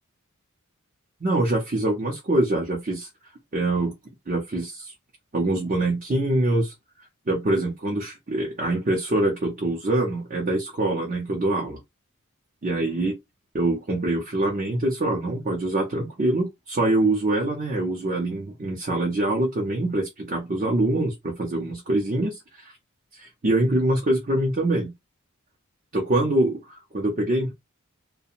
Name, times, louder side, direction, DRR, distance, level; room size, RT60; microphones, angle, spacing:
voice 1, 1.2-3.1 3.5-3.9 4.3-4.9 5.3-6.7 7.3-11.8 12.6-13.1 13.5-22.7 23.2-24.9 25.9-27.5, right 1 dB, 35° right, 0.6 m, -24 dB
2.5 x 2.2 x 2.7 m
head